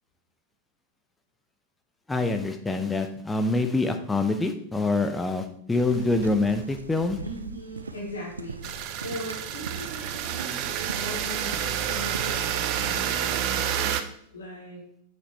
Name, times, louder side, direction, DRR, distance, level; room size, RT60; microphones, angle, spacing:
voice 1, 2.1-7.2, left 3 dB, 10° left, 6 dB, 0.8 m, -25 dB
sound 1, 5.7-13.2, right 4 dB, 75° right, 0.6 m, -41 dB
voice 2, 7.2-15.0, left 1 dB, 75° left, -5 dB, 3.6 m, -39 dB
sound 2, 8.6-14.0, right 10 dB, 40° right, 0.7 m, -29 dB
8.5 x 8.0 x 3.3 m, 0.69 s
figure-of-eight pair, 90°, 0 cm